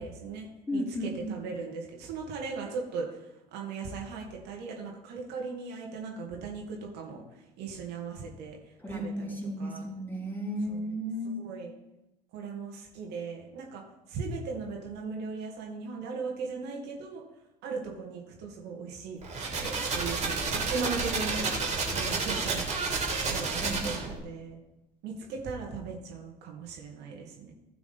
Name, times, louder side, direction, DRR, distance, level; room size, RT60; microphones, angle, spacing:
voice 1, 0.0-9.9 10.7-10.9 11.3-11.7 12.3-17.2 17.6-19.2 19.6-21.5 21.9-22.6 23.3-24.6 25.0-27.5, right 4 dB, 55° right, 0 dB, 2.1 m, -38 dB
voice 2, 0.7-1.3 8.8-11.4 23.6-23.9, equal, 10° left, -2 dB, 3.4 m, -34 dB
sound 1, 19.2-24.2, right 4 dB, 30° right, 3.1 m, -30 dB
15.5 x 5.9 x 4.2 m, 0.91 s
figure-of-eight pair, 65°, 21 cm